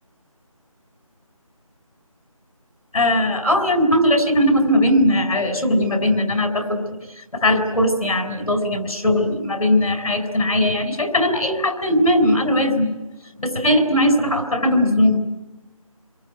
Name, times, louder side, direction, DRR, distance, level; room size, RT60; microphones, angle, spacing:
voice 1, 2.9-12.9 13.4-15.2, left 1 dB, 75° left, 7 dB, 4.7 m, -19 dB
26.5 x 23.0 x 9.0 m, 1.1 s
figure-of-eight pair, 180°, 18 cm